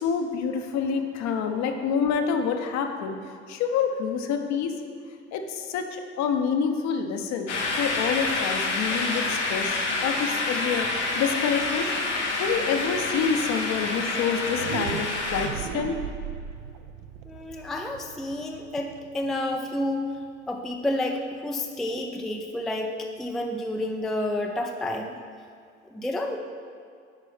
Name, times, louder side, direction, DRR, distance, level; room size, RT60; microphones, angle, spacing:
voice 1, 0.0-4.8 5.3-11.9 12.4-16.0, left 6 dB, 50° left, 5 dB, 0.8 m, -27 dB
sound 1, 7.5-15.5, left 3 dB, 90° left, 0.9 m, -28 dB
sound 2, 14.5-20.3, right 9 dB, 60° right, 0.5 m, -38 dB
voice 2, 17.2-20.0 20.5-25.2 25.9-26.4, left 1 dB, ahead, 3 dB, 0.4 m, -30 dB
8.4 x 5.3 x 3.3 m, 2.2 s
hypercardioid pair, 75°, 35 cm